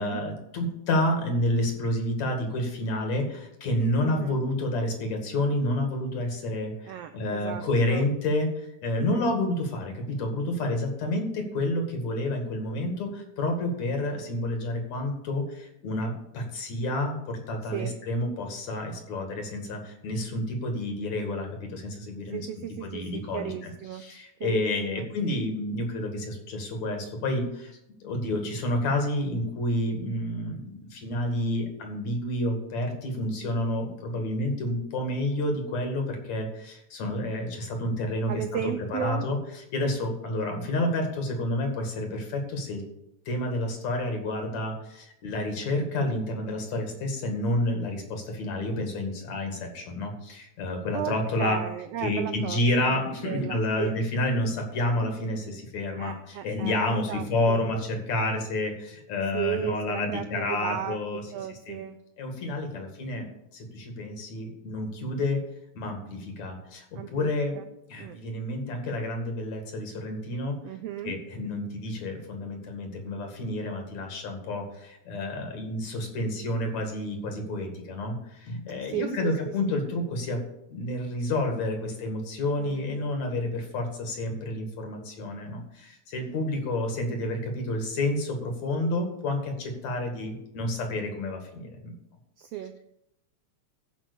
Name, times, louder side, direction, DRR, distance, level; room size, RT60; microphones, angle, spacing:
voice 1, 0.0-8.5 8.8-22.5 22.8-27.8 28.0-42.8 43.3-61.8 62.2-63.3 63.5-65.4 65.7-67.6 67.9-70.5 71.0-80.4 80.7-91.9, left 1 dB, 65° left, 3 dB, 3.3 m, -29 dB
voice 2, 4.0-4.4 6.8-8.1 9.0-9.3 17.7-17.9 22.3-24.0 24.4-25.1 38.3-39.3 50.9-53.0 53.2-54.0 56.0-57.7 59.3-62.0 66.9-67.7 68.0-68.2 70.6-71.2 78.9-79.4 82.6-82.8 92.4-92.8, right 11 dB, 85° right, 9 dB, 1.4 m, -35 dB
15.0 x 5.4 x 6.9 m, 0.82 s
omnidirectional pair, 3.5 m